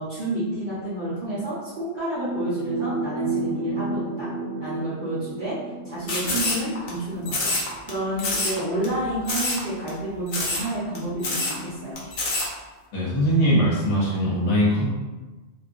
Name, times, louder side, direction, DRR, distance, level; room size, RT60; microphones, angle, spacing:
voice 1, 0.0-4.3 4.6-5.6 5.8-12.0, right 1 dB, 50° right, -12 dB, 0.9 m, -30 dB
sound 1, 2.1-8.0 9.0-9.1 10.8-11.9, right 3 dB, 70° right, 1.2 m, -32 dB
sound 2, 6.1-6.9 7.3-7.9 8.2-8.6 8.8-8.9 9.3-9.6 9.9-10.0 10.3-10.7 10.9-11.0 11.2-11.6 12.0-12.5, left 2 dB, 60° left, 0.9 m, -26 dB
voice 2, 12.9-14.9, equal, 85° left, -6 dB, 1.2 m, -21 dB
3.3 x 2.5 x 2.5 m, 1.2 s
omnidirectional pair, 1.2 m